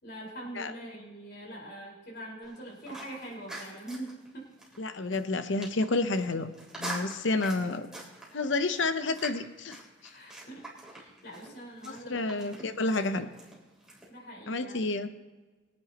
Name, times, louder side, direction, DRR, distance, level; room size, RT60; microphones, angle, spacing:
voice 1, 0.0-4.5 10.1-13.2 14.1-14.9, right 1 dB, 60° left, -3 dB, 4.8 m, -44 dB
sound 1, 2.4-14.1, right 2 dB, 5° right, 3.6 m, -45 dB
voice 2, 4.8-6.5 6.8-7.9 8.3-9.8 11.8-13.3 14.5-15.1, left 3 dB, 80° left, 10 dB, 0.9 m, -30 dB
23.5 x 9.7 x 3.0 m, 1.3 s
head